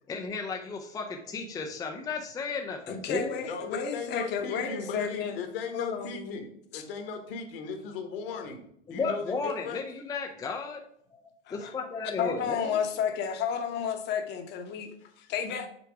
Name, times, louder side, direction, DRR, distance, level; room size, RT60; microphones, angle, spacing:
voice 1, 0.1-3.4 8.9-10.8 11.5-12.8, left 4 dB, 10° left, 2 dB, 0.5 m, -34 dB
voice 2, 2.9-5.4 5.7-6.4 6.7-6.8 11.5-11.7 12.2-14.9 15.3-15.7, left 7 dB, 30° left, 6 dB, 1.0 m, -32 dB
voice 3, 3.4-8.6 8.9-9.8 15.0-15.3, left 5 dB, 55° left, 6 dB, 1.4 m, -38 dB
6.1 x 4.6 x 4.7 m, 0.68 s
figure-of-eight pair, 95°, 34 cm